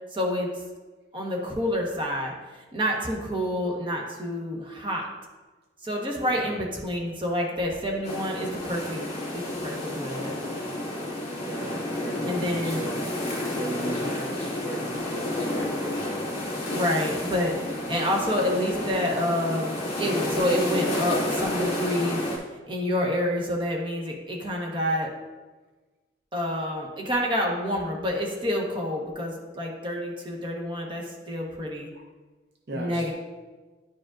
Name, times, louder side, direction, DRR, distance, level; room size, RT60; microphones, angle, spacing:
voice 1, 0.1-0.5 1.1-2.3 2.7-5.1 5.8-9.0 9.3-10.3 12.2-12.9 16.7-22.2 22.7-25.1 26.3-31.9 32.7-33.1, equal, 30° right, -1 dB, 1.1 m, -28 dB
voice 2, 6.3-6.6 11.4-13.0 13.6-16.1 31.9-32.0 32.7-33.1, right 2 dB, 60° right, 2 dB, 0.6 m, -37 dB
sound 1, 8.0-22.4, left 1 dB, 40° left, 2.2 m, -30 dB
10.5 x 4.9 x 2.5 m, 1.3 s
head